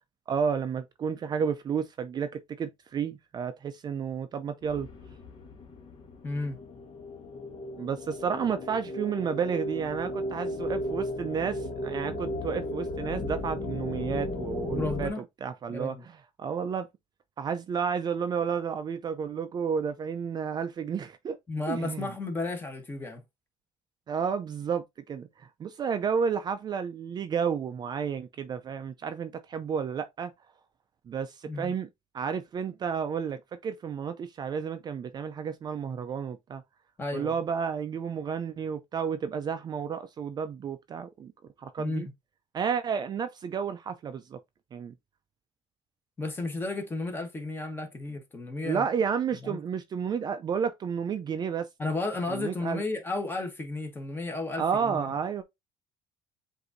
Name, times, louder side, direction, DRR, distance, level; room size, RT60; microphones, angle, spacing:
voice 1, 0.3-4.9 7.8-15.1 15.4-16.0 16.4-16.9 17.4-21.4 21.7-22.1 24.1-30.3 31.1-31.9 32.1-36.6 37.1-41.3 41.6-42.1 42.5-44.4 44.7-44.9 48.6-51.7 52.3-52.8 54.6-55.4, right 6 dB, 35° right, 0.4 m, -31 dB
sound 1, 4.6-15.1, left 1 dB, 50° left, 1.2 m, -35 dB
voice 2, 6.2-6.6 14.7-15.2 15.7-16.0 21.5-23.2 31.5-31.7 37.0-37.4 41.8-42.0 46.2-48.9 49.4-49.6 51.8-55.1, left 2 dB, 20° left, 1.2 m, -33 dB
7.8 x 2.7 x 2.6 m
cardioid pair, 125°, 12 cm